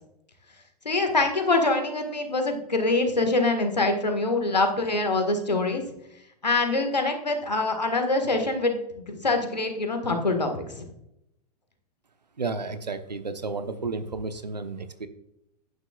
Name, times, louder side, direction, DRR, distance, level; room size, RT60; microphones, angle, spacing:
voice 1, 0.9-5.8 6.4-10.9, left 2 dB, 85° left, 6 dB, 1.8 m, -24 dB
voice 2, 12.4-15.1, right 3 dB, 85° right, 10 dB, 1.0 m, -32 dB
11.0 x 9.7 x 2.4 m, 0.82 s
figure-of-eight pair, 105°, 21 cm